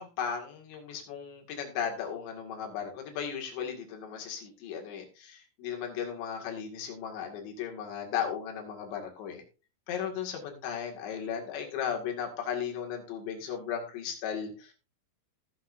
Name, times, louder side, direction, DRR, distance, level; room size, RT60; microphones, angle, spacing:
voice 1, 0.0-9.4 9.9-14.7, left 8 dB, 70° left, 1 dB, 4.3 m, -36 dB
17.5 x 7.1 x 2.6 m, 0.33 s
omnidirectional pair, 5.4 m